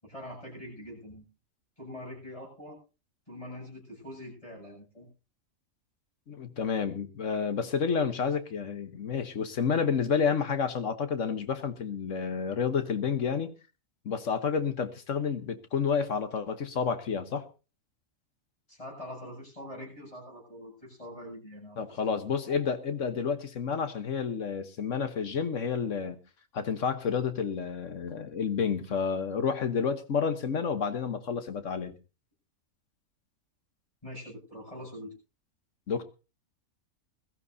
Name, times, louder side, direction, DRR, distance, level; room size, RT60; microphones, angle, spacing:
voice 1, 0.0-1.3 1.8-2.8 3.3-5.1 18.7-22.1 22.5-22.6 34.0-35.1, left 1 dB, 20° left, -1 dB, 7.8 m, -44 dB
voice 2, 6.3-13.5 14.0-17.4 21.8-26.2 26.5-31.9 35.9-36.0, left 6 dB, 55° left, 10 dB, 1.4 m, -30 dB
21.5 x 14.0 x 2.7 m, 0.32 s
omnidirectional pair, 1.6 m